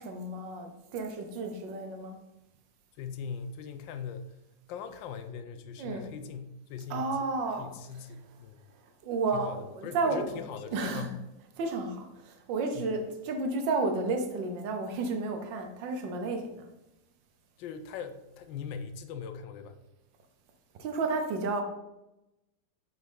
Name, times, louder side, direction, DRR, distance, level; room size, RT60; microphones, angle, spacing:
voice 1, 0.0-2.2 5.8-6.1 6.9-8.0 9.0-10.4 10.7-11.1 11.6-16.7 20.8-21.6, right 3 dB, 75° right, 1.6 m, -32 dB
voice 2, 3.0-4.3 4.7-7.3 7.6-8.6 9.3-11.2 12.7-12.9 17.6-19.8, left 6 dB, 85° left, 1.4 m, -40 dB
7.9 x 5.5 x 3.8 m
omnidirectional pair, 2.0 m